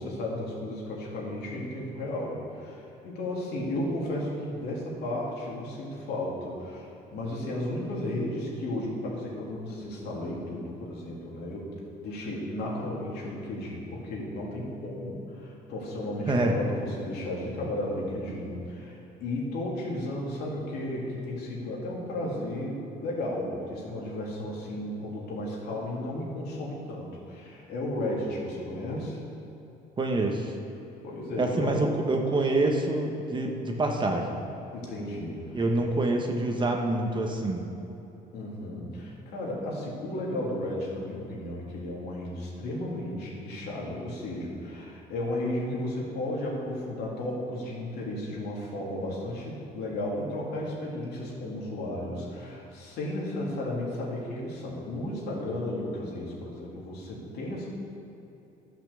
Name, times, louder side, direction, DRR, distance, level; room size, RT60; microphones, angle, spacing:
voice 1, 0.0-11.7 12.0-29.2 31.0-31.8 34.7-35.6 38.3-57.7, left 1 dB, 75° left, -4 dB, 2.9 m, -34 dB
voice 2, 30.0-30.5 31.4-34.2 35.5-37.7, right 2 dB, 30° right, 2 dB, 1.3 m, -26 dB
12.0 x 5.9 x 7.0 m, 3.0 s
cardioid pair, 110°, 17 cm